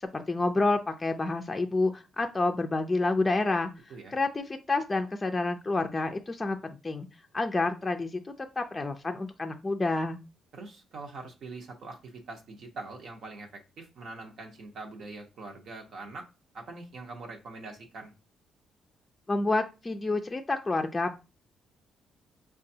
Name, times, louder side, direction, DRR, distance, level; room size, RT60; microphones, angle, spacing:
voice 1, 0.0-3.7 4.1-7.1 7.3-8.2 8.6-10.2 19.3-21.1, left 2 dB, 20° left, 4 dB, 0.4 m, -28 dB
voice 2, 10.5-16.3 16.5-18.1, right 3 dB, 65° right, 2 dB, 0.8 m, -43 dB
5.0 x 2.3 x 2.7 m, 0.29 s
cardioid pair, 90°, 0 cm